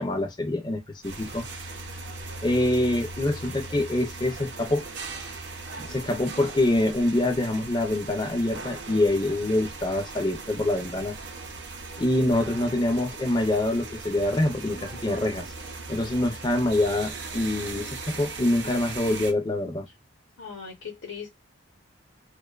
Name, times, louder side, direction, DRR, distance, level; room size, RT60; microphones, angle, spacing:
voice 1, 0.0-1.4 2.4-4.8 5.8-11.2 12.0-15.5 15.9-19.9, left 1 dB, 20° left, 0.4 m, -25 dB
sound 1, 1.0-19.3, right 3 dB, 60° right, 0.5 m, -39 dB
voice 2, 20.4-21.4, left 6 dB, 70° left, 0.8 m, -39 dB
2.5 x 2.2 x 2.3 m
head